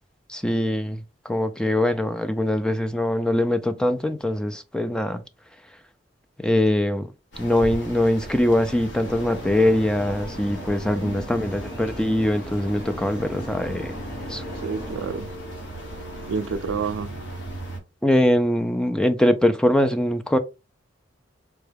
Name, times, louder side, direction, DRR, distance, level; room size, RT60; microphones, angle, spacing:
voice 1, 0.3-5.2 6.4-7.1 7.4-13.9 14.3-14.4 18.0-20.4, left 1 dB, 5° left, 0.3 m, -22 dB
sound 1, 7.3-17.8, right 1 dB, 70° left, 1.5 m, -37 dB
sound 2, 9.0-15.2, equal, 55° left, 1.2 m, -39 dB
voice 2, 11.0-11.4 14.5-15.3 16.3-17.1, right 5 dB, 90° right, 0.4 m, -29 dB
4.3 x 2.2 x 3.3 m
head